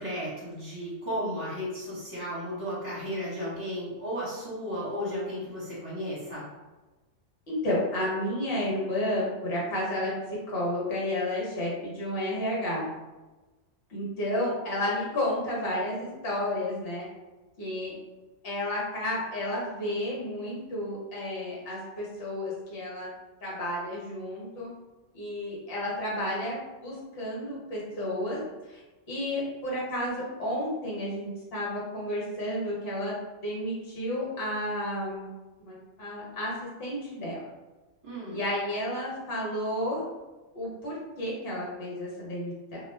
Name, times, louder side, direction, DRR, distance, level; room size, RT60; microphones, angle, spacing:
voice 1, 0.0-6.4 38.0-38.4, equal, 25° right, -9 dB, 1.3 m, -34 dB
voice 2, 7.5-10.1 10.5-12.9 13.9-17.0 17.6-17.9 18.4-23.1 23.4-24.7 25.1-28.4 28.7-28.8 29.1-33.1 33.4-35.3 35.7-36.5 36.8-37.5 38.3-40.0 40.5-42.8, left 1 dB, 50° left, -5 dB, 1.1 m, -31 dB
2.4 x 2.3 x 3.2 m, 1.2 s
omnidirectional pair, 1.4 m